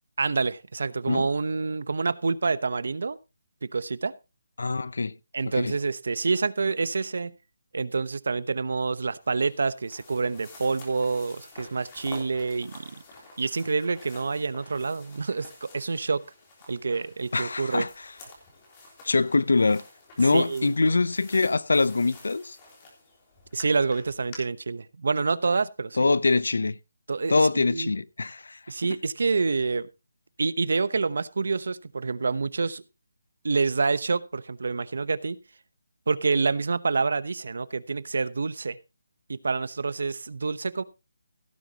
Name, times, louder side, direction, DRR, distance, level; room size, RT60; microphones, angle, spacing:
voice 1, 0.2-3.2 3.6-4.1 5.3-7.3 7.7-12.9 13.4-16.2 16.7-17.9 20.3-20.7 23.5-26.0 27.1-27.9 28.7-29.9 30.4-32.8 33.4-35.4 36.1-38.8 39.3-40.8, right 4 dB, 60° right, 1.0 m, -27 dB
voice 2, 4.6-5.1 5.6-5.7 17.3-17.9 19.0-19.8 20.2-22.6 26.0-26.8 27.3-28.6, left 3 dB, 80° left, 0.8 m, -23 dB
sound 1, 9.2-24.4, left 2 dB, 15° left, 3.4 m, -49 dB
16.5 x 9.2 x 2.9 m
hypercardioid pair, 175°, 0 cm